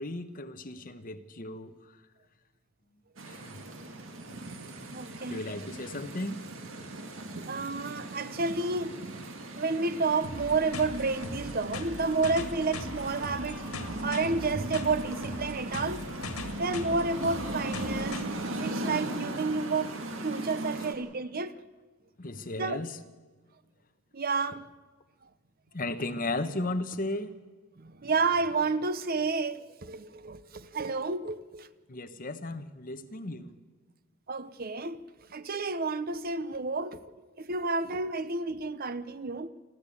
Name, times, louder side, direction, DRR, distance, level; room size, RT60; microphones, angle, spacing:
voice 1, 0.0-2.0 3.3-3.6 5.2-6.4 22.2-23.0 25.7-27.4 31.9-33.6, left 2 dB, 40° left, 1.1 m, -35 dB
sound 1, 3.2-20.9, right 2 dB, 65° right, 2.2 m, -38 dB
voice 2, 4.9-5.4 7.4-9.1 9.4-13.6 14.0-16.0 16.6-18.2 18.6-21.5 22.6-22.8 24.1-24.7 27.8-31.7 34.3-35.0 35.3-37.0 37.4-39.5, right 3 dB, 45° right, 0.7 m, -30 dB
sound 2, 10.2-18.2, left 2 dB, 90° left, 2.0 m, -40 dB
26.5 x 13.5 x 8.6 m
head